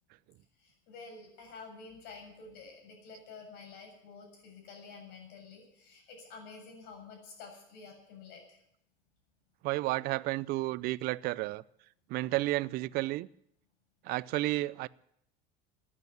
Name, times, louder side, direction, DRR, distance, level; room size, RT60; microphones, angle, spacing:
voice 1, 0.6-8.6, left 4 dB, 60° left, 3 dB, 7.5 m, -50 dB
voice 2, 9.6-11.6 12.1-13.3 14.0-14.9, right 18 dB, 55° right, 19 dB, 0.5 m, -31 dB
15.0 x 9.7 x 9.5 m, 0.72 s
cardioid pair, 135°, 19 cm